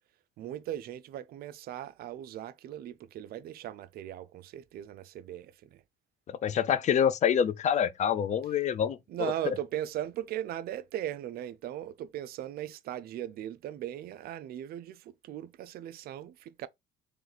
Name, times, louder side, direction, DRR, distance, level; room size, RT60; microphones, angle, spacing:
voice 1, 0.4-5.8 9.1-16.7, right 12 dB, 65° right, 0.5 m, -38 dB
voice 2, 6.4-9.3, left 8 dB, 45° left, 0.4 m, -26 dB
3.1 x 3.0 x 4.0 m
cardioid pair, 110°, 17 cm